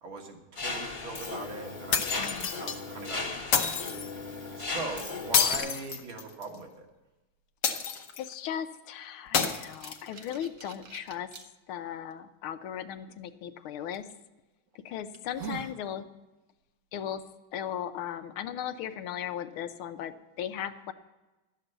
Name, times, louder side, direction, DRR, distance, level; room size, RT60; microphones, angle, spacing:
voice 1, 0.0-6.9, right 3 dB, 70° right, 1 dB, 2.4 m, -41 dB
Mechanisms, 0.6-5.6, left 3 dB, 30° left, 1.1 m, -37 dB
sound 1, 1.9-2.8 3.5-4.1 5.3-6.6 7.6-8.3 9.3-10.3, left 6 dB, 55° left, 1.4 m, -28 dB
voice 2, 2.2-2.5 8.2-11.3 11.7-14.0 14.8-16.1 16.9-17.2 17.5-20.9, left 9 dB, 80° left, 9 dB, 1.6 m, -37 dB
sound 2, 9.7-11.4 12.1-12.2 13.9-14.1 14.7-14.8 15.1-15.8, right 6 dB, 55° right, 0.9 m, -43 dB
12.0 x 7.5 x 8.0 m, 1.1 s
omnidirectional pair, 2.3 m